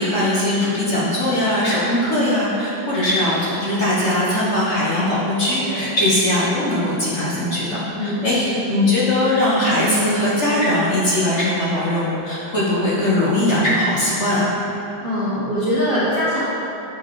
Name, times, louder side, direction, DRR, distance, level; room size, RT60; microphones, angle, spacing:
voice 1, 0.0-14.5, left 1 dB, 40° left, -7 dB, 1.4 m, -20 dB
voice 2, 8.0-8.6 15.0-16.4, equal, 35° right, -9 dB, 0.9 m, -23 dB
7.5 x 5.6 x 4.8 m, 2.9 s
omnidirectional pair, 2.2 m